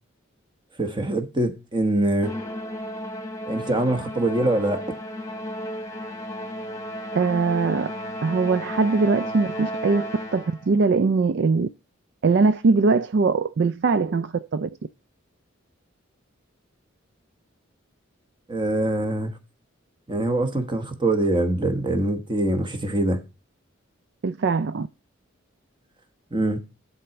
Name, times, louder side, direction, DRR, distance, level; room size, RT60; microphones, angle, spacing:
voice 1, 0.8-2.3 3.4-4.8 18.5-19.3 20.1-23.2 26.3-26.6, right 1 dB, 25° right, 1.1 m, -24 dB
Musical instrument, 2.2-10.7, equal, 15° left, 1.3 m, -34 dB
voice 2, 7.1-7.9 8.2-11.7 12.2-14.7 24.2-24.9, right 4 dB, 55° right, 0.4 m, -21 dB
11.0 x 4.2 x 5.7 m
head